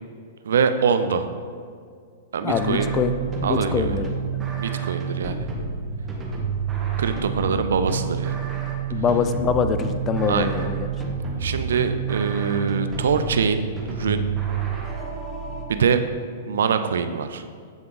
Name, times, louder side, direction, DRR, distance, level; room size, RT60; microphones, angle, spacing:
voice 1, 0.4-1.3 2.3-2.9 3.4-4.0 4.6-5.5 7.0-8.4 10.3-10.5 11.4-14.2 15.7-16.0 16.5-17.4, right 6 dB, 80° right, 9 dB, 0.4 m, -23 dB
voice 2, 2.4-3.1 3.4-4.4 8.9-10.9, left 6 dB, 25° left, 9 dB, 0.3 m, -24 dB
sound 1, 2.5-15.7, right 6 dB, 15° right, 0.9 m, -29 dB
7.9 x 3.5 x 3.8 m, 2.1 s
hypercardioid pair, 130°, 0 cm